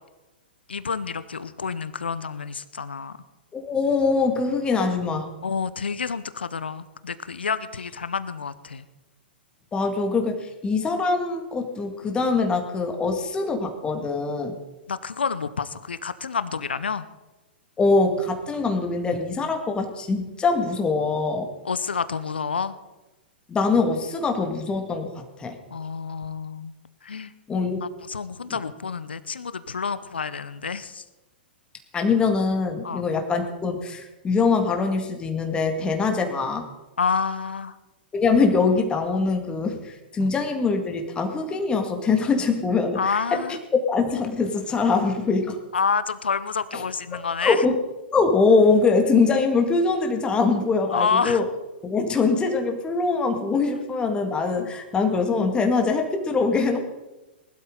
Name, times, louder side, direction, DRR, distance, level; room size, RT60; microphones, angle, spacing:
voice 1, 0.7-3.2 4.7-4.9 5.4-8.9 14.9-17.1 21.6-22.8 25.7-26.7 27.0-27.3 27.8-31.0 32.8-33.0 37.0-37.8 40.2-40.3 43.0-43.6 45.7-47.6 50.9-51.4 54.6-54.7, left 5 dB, 80° left, 15 dB, 0.7 m, -28 dB
voice 2, 3.5-5.3 9.7-14.6 17.8-21.5 23.5-25.6 27.5-27.8 28.5-28.6 31.9-36.7 38.1-43.6 43.9-45.6 46.7-46.8 47.4-47.7 48.1-51.4 51.8-56.8, left 4 dB, 15° left, 4 dB, 2.0 m, -23 dB
20.0 x 12.0 x 3.9 m, 1.1 s
figure-of-eight pair, 110°, 6 cm